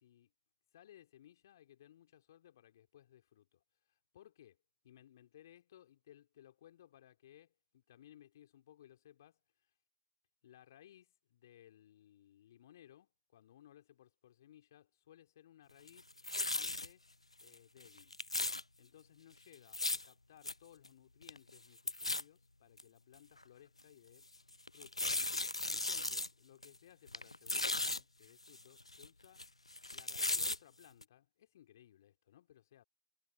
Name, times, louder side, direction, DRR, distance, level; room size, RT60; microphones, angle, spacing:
voice 1, 0.0-0.3 0.7-4.6 4.8-9.4 10.4-17.1 17.4-18.2 18.8-24.3 24.7-25.0 25.4-29.4 29.9-32.8, left 11 dB, 40° left, 3.6 m, -62 dB
sound 1, 15.9-16.9 17.4-17.5 17.8-18.6 19.5-20.1 20.4-20.5 20.8-20.9 21.2-21.6 21.9-22.2 22.8-22.9 23.4-23.5 24.7-26.3 26.6-26.8 27.1-28.0 28.5-29.5 29.7-30.6 31.0-31.1, left 2 dB, 85° left, 0.3 m, -36 dB
figure-of-eight pair, 135°, 3 cm